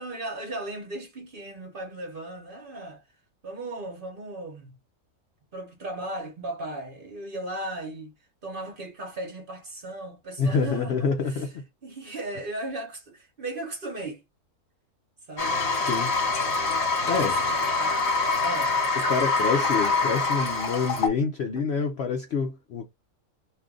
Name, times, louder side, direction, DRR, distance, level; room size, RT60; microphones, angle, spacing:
voice 1, 0.0-3.0 3.4-4.7 5.5-8.1 8.4-11.5 11.8-14.2 15.3-15.6 17.0-18.1 18.4-18.8, right 2 dB, 40° right, 0.9 m, -36 dB
voice 2, 10.4-11.5 15.7-16.1 17.1-17.3 19.1-22.9, left 5 dB, 65° left, 0.6 m, -27 dB
Toilet flush, 15.4-21.1, left 3 dB, 50° left, 1.3 m, -25 dB
2.6 x 2.4 x 3.6 m
omnidirectional pair, 1.6 m